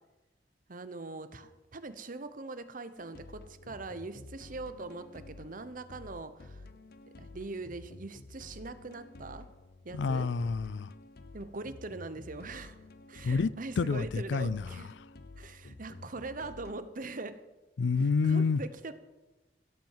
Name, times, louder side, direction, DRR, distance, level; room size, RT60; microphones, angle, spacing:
voice 1, 0.7-6.6 7.2-9.5 9.8-10.3 11.3-12.8 13.1-14.9 15.4-17.4 18.2-18.9, right 3 dB, 50° right, 1.0 m, -42 dB
sound 1, 3.0-16.7, left 2 dB, 60° left, 0.8 m, -51 dB
voice 2, 9.9-10.9 13.2-13.5 13.8-14.8 17.8-18.6, left 4 dB, 85° left, 0.4 m, -28 dB
16.5 x 7.6 x 7.4 m
head